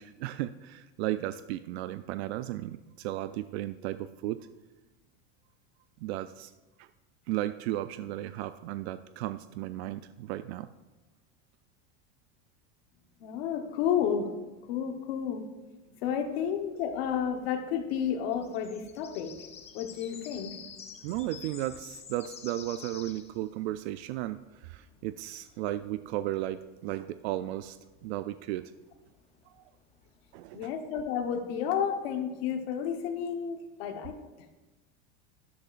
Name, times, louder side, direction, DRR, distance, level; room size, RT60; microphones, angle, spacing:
voice 1, 0.0-4.5 6.0-6.5 6.8-6.9 7.3-10.7 21.0-27.8 28.0-28.7 29.5-29.6 30.3-30.7, right 14 dB, 85° right, 12 dB, 0.5 m, -35 dB
voice 2, 13.2-14.3 14.7-15.4 16.0-19.3 19.7-20.5 30.5-34.2, left 8 dB, 75° left, 5 dB, 1.2 m, -31 dB
sound 1, 16.2-31.9, left 7 dB, 20° left, 0.7 m, -51 dB
12.5 x 12.0 x 2.5 m, 1.1 s
supercardioid pair, 155°, 31 cm